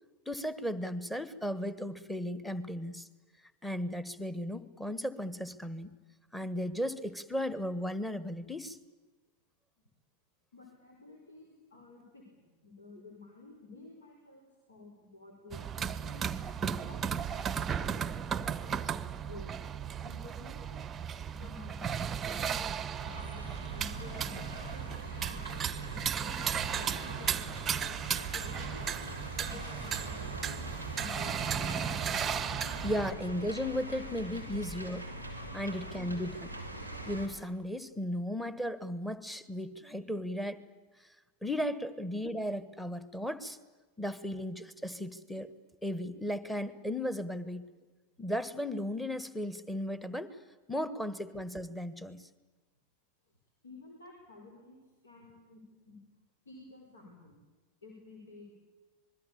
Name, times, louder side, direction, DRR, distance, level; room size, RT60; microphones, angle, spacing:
voice 1, 0.2-3.1 3.6-5.9 6.3-8.8 32.8-35.1 35.5-36.6 37.1-40.6 41.0-41.1 41.4-43.6 44.0-45.5 45.8-47.7 48.2-50.4 50.7-52.3, equal, 5° left, 15 dB, 1.5 m, -35 dB
voice 2, 10.5-12.2 12.6-16.4 16.8-19.5 20.0-20.8 21.3-24.9 25.9-28.9 29.4-31.8 53.6-54.8 55.0-56.0 56.4-57.3 57.8-58.5, left 3 dB, 70° left, 2 dB, 4.9 m, -52 dB
sound 1, 15.5-33.1, right 8 dB, 20° right, 0.8 m, -35 dB
sound 2, 23.1-37.3, right 1 dB, 85° left, 4.7 m, -43 dB
26.5 x 21.5 x 8.7 m, 1.2 s
figure-of-eight pair, 90°, 0 cm